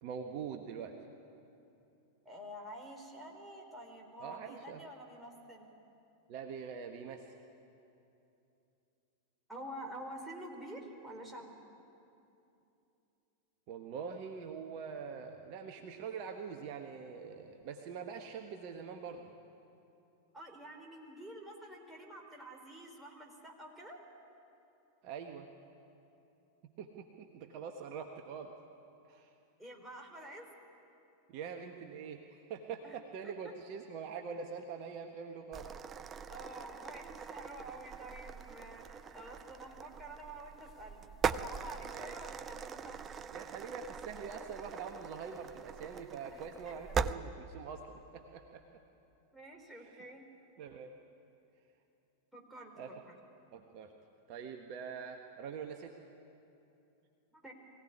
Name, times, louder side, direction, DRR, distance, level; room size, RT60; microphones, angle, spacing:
voice 1, 0.0-0.9 4.2-4.8 6.3-7.2 13.7-19.3 25.0-25.5 26.8-28.6 29.1-29.3 31.3-35.7 41.9-42.1 43.3-48.6 49.8-49.9 50.6-50.9 52.8-52.9 53.5-53.9 54.3-55.9, right 6 dB, 45° right, 5 dB, 1.3 m, -44 dB
voice 2, 2.2-5.7 9.5-11.5 20.3-24.0 29.6-30.5 32.8-33.0 33.2-33.3 36.3-43.0 46.3-46.7 49.3-50.2 52.3-53.1 57.3-57.5, right 1 dB, 5° right, 0 dB, 4.1 m, -48 dB
sound 1, 35.5-47.1, right 6 dB, 25° right, 0.6 m, -41 dB
23.0 x 16.5 x 9.9 m, 2.8 s
figure-of-eight pair, 90°, 0 cm